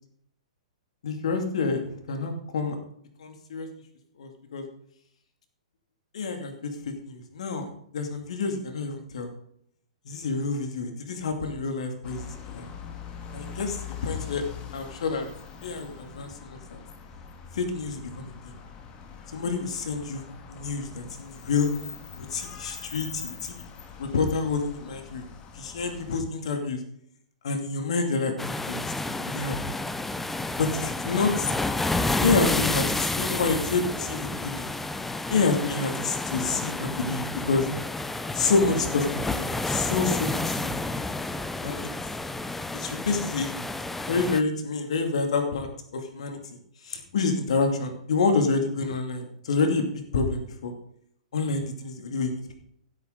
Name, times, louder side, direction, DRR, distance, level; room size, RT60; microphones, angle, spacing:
voice 1, 1.0-1.8 2.1-2.7 3.2-3.7 4.2-4.6 6.1-6.7 7.1-7.7 7.9-9.3 10.1-12.7 13.3-14.4 14.7-15.3 15.6-16.8 17.5-18.5 19.3-20.2 20.5-21.7 22.1-23.7 24.0-25.2 25.5-26.8 27.4-29.8 30.6-31.5 32.2-34.7 35.3-37.7 38.3-40.7 41.6-41.8 42.7-43.5 44.1-46.4 46.8-49.9 50.1-50.7 51.3-52.5, left 4 dB, 60° left, 4 dB, 2.6 m, -28 dB
sound 1, 12.0-26.2, left 7 dB, 25° left, 1.9 m, -43 dB
sound 2, 28.4-44.4, left 2 dB, 5° left, 0.6 m, -30 dB
15.5 x 8.6 x 3.9 m, 0.69 s
figure-of-eight pair, 110°, 4 cm